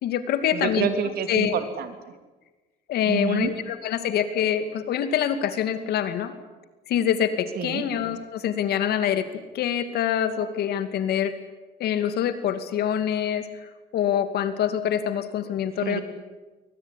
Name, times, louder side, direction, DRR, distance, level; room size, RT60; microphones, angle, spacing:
voice 1, 0.0-0.9 1.3-1.5 2.9-6.3 6.9-9.3 9.5-11.3 11.8-16.0, left 9 dB, 70° left, 10 dB, 2.5 m, -25 dB
voice 2, 0.5-1.9 3.1-3.5 7.6-7.8 15.8-16.0, right 8 dB, 65° right, 8 dB, 3.2 m, -28 dB
23.0 x 19.5 x 9.9 m, 1.2 s
cardioid pair, 110°, 17 cm